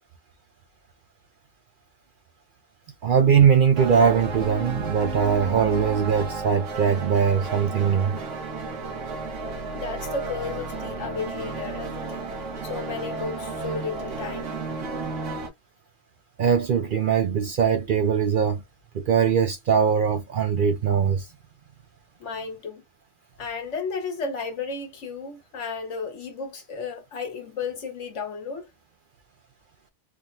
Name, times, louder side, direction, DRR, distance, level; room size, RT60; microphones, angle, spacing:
voice 1, 3.0-8.2 16.4-18.6 18.9-21.3, right 7 dB, 55° right, 0.6 m, -21 dB
sound 1, 3.7-15.5, right 3 dB, 80° right, 1.3 m, -33 dB
voice 2, 9.7-12.3 12.6-14.5 22.2-22.8 23.4-28.7, left 4 dB, 75° left, 1.3 m, -33 dB
3.5 x 2.1 x 2.5 m
omnidirectional pair, 1.3 m